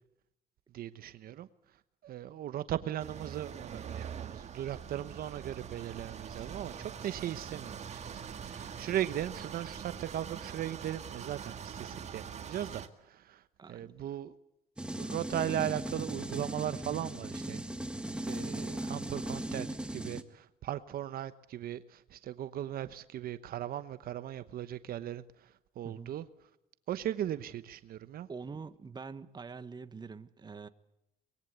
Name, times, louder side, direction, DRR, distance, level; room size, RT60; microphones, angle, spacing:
voice 1, 0.7-1.5 2.0-14.3 15.0-17.6 18.3-19.7 19.9-26.3 26.9-28.3, right 11 dB, 60° right, 1.0 m, -38 dB
sound 1, 3.0-12.9, right 7 dB, 40° right, 2.0 m, -44 dB
voice 2, 13.6-13.9 25.8-26.1 28.3-30.7, right 5 dB, 25° right, 1.3 m, -45 dB
sound 2, 14.8-20.2, right 1 dB, 5° right, 1.6 m, -38 dB
24.0 x 21.5 x 8.2 m
cardioid pair, 110°, 17 cm